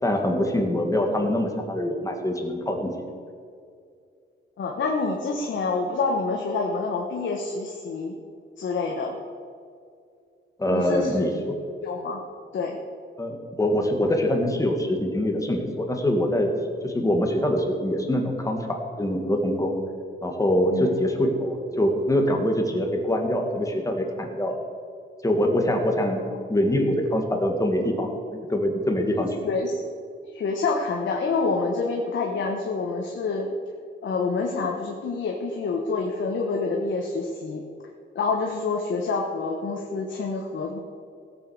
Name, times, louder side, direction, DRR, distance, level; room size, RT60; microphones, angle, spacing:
voice 1, 0.0-2.9 10.6-11.6 13.2-16.5 16.8-19.8 20.2-24.6 25.2-26.2 26.5-29.4, left 1 dB, 15° left, 2 dB, 2.0 m, -24 dB
voice 2, 4.6-8.1 8.6-9.2 10.7-11.3 11.8-12.2 12.5-12.8 20.7-20.9 26.3-26.4 29.4-29.8 30.3-33.5 34.0-37.6 38.1-40.8, left 4 dB, 70° left, 0 dB, 1.4 m, -27 dB
17.0 x 7.4 x 6.6 m, 2.3 s
wide cardioid pair, 120°, 20 cm